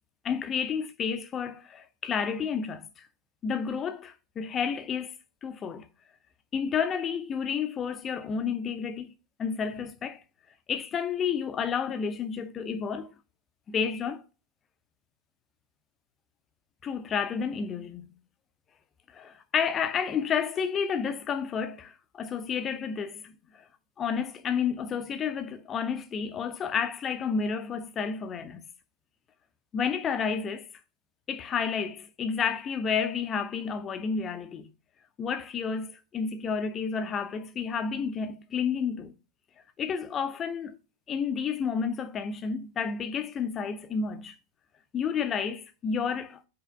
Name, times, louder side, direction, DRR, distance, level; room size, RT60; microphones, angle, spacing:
voice 1, 0.2-3.1 3.4-5.1 5.4-5.9 6.5-9.1 9.4-10.2 10.7-13.1 13.7-14.2 16.8-18.1 19.1-23.3 24.0-28.6 29.7-30.7 31.3-34.6 35.2-39.1 39.8-40.8 41.1-44.3 44.9-46.4, left 6 dB, 25° left, 0.7 m, -30 dB
5.7 x 3.3 x 5.7 m
figure-of-eight pair, 90°, 0 cm